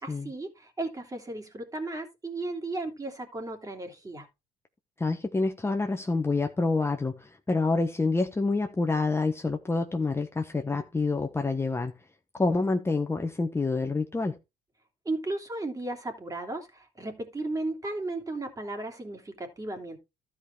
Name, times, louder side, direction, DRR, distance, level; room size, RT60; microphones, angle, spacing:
voice 1, 0.0-4.3 15.0-20.0, right 2 dB, 20° right, 3.0 m, -35 dB
voice 2, 5.0-11.9 12.3-14.3, left 3 dB, 15° left, 1.1 m, -27 dB
13.0 x 5.1 x 4.5 m
cardioid pair, 110°, 17 cm